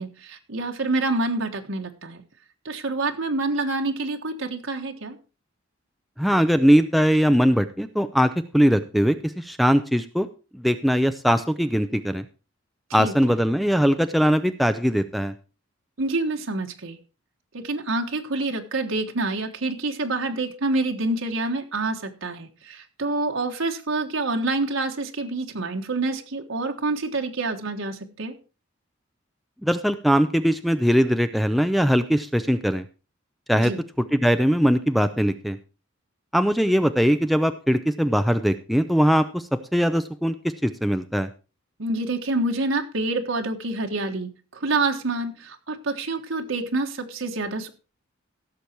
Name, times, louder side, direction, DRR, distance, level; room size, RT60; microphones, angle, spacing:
voice 1, 0.0-2.2 2.6-5.2 13.0-13.1 16.0-17.0 17.5-28.3 33.5-33.8 41.8-47.7, right 2 dB, 85° right, 3 dB, 1.5 m, -27 dB
voice 2, 6.2-10.3 10.5-12.2 12.9-15.3 29.6-32.8 33.5-33.7 34.1-35.6 36.3-39.4 39.7-40.3 40.6-41.3, equal, ahead, 9 dB, 0.5 m, -21 dB
16.0 x 7.0 x 4.5 m, 0.34 s
head